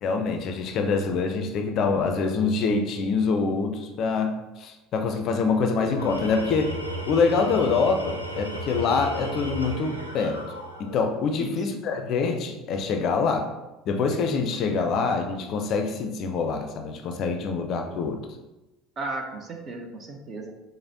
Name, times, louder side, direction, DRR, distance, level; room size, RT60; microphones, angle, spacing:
voice 1, 0.0-6.8 7.1-10.4 10.8-13.5 13.9-18.2, left 4 dB, 50° left, 5 dB, 0.4 m, -25 dB
Tools, 5.8-11.2, equal, 90° right, 0.4 m, -34 dB
voice 2, 11.3-11.8 14.8-14.9 19.0-20.5, right 2 dB, 35° right, 3 dB, 0.6 m, -35 dB
4.9 x 2.0 x 2.7 m, 1.0 s
figure-of-eight pair, 65°, 0 cm